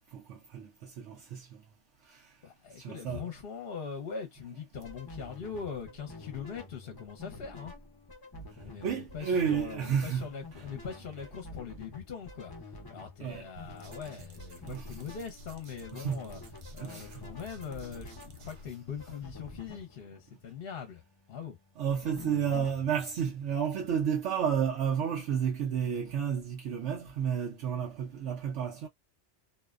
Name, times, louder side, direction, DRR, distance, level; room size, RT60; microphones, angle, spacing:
voice 1, 0.1-1.6 2.0-2.3 2.7-3.3 8.8-10.3 10.5-10.7 13.2-13.5 14.6-15.0 15.9-16.2 16.8-17.2 21.8-28.9, right 7 dB, 75° right, 0.9 m, -31 dB
voice 2, 2.4-7.7 8.6-12.5 12.9-16.4 16.7-21.0 21.3-21.6, left 6 dB, 60° left, 0.8 m, -41 dB
sound 1, 4.5-4.6 4.8-4.9 5.6-7.7 8.5-9.9 10.6-11.7 13.6-18.7 21.8-22.2, right 2 dB, 50° right, 0.5 m, -53 dB
sound 2, 4.8-24.3, left 2 dB, 25° left, 0.5 m, -49 dB
2.6 x 2.1 x 2.3 m
omnidirectional pair, 1.2 m